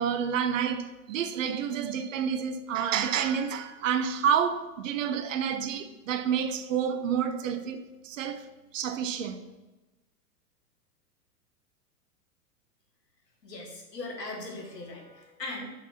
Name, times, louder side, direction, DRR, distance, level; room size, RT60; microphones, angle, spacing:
voice 1, 0.0-8.5 8.7-9.4, right 8 dB, 55° right, 0.8 m, -29 dB
voice 2, 13.4-15.7, left 2 dB, 80° left, 2.1 m, -39 dB
6.1 x 4.7 x 5.7 m
figure-of-eight pair, 105°, 48 cm